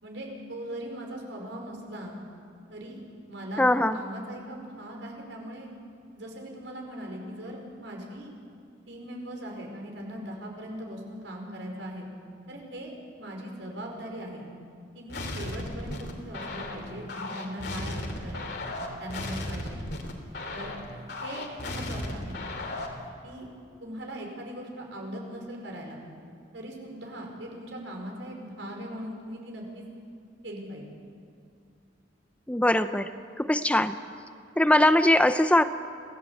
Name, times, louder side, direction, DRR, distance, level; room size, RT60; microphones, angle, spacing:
voice 1, 0.0-2.1 2.7-3.0 3.3-3.7 3.9-5.7 6.2-8.3 8.9-12.1 12.5-14.5 14.9-18.5 19.0-19.8 20.5-20.7 21.2-22.4 23.2-23.5 23.8-26.0 26.5-29.8 30.4-30.9, equal, 80° right, 1 dB, 5.2 m, -39 dB
voice 2, 3.6-4.0 32.5-33.1 33.4-34.0 34.6-35.6, left 1 dB, 5° left, 10 dB, 0.6 m, -21 dB
sound 1, 15.1-23.1, left 1 dB, 65° left, 3.0 m, -36 dB
26.5 x 17.0 x 8.4 m, 2.3 s
head